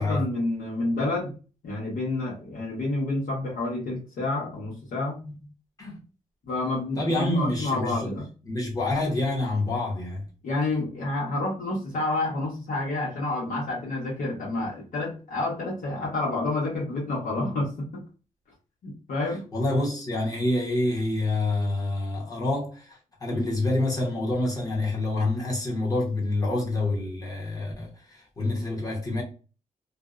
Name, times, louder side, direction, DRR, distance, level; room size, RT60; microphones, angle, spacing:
voice 1, 0.0-1.3 1.6-5.2 6.5-8.2 10.4-18.0 18.8-19.4 23.3-23.4, left 2 dB, 85° left, 1.0 m, -29 dB
voice 2, 7.0-8.0 8.4-10.2 19.5-22.9 23.2-29.2, left 2 dB, 25° left, 0.8 m, -27 dB
2.6 x 2.0 x 2.3 m
wide cardioid pair, 180°, 14 cm